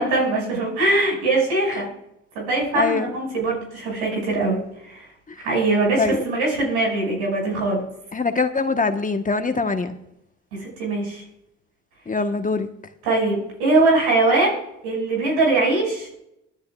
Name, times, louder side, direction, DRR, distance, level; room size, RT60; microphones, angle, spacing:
voice 1, 0.0-1.9 2.3-4.6 4.9-5.0 5.4-7.8 10.5-11.2 13.0-14.6 14.8-16.2, right 2 dB, 85° right, -2 dB, 6.1 m, -21 dB
voice 2, 2.7-3.1 5.3-5.4 6.0-6.2 8.1-10.0 12.1-12.7, left 4 dB, 25° left, 7 dB, 1.3 m, -23 dB
23.0 x 11.5 x 2.4 m, 0.79 s
hypercardioid pair, 55°, 34 cm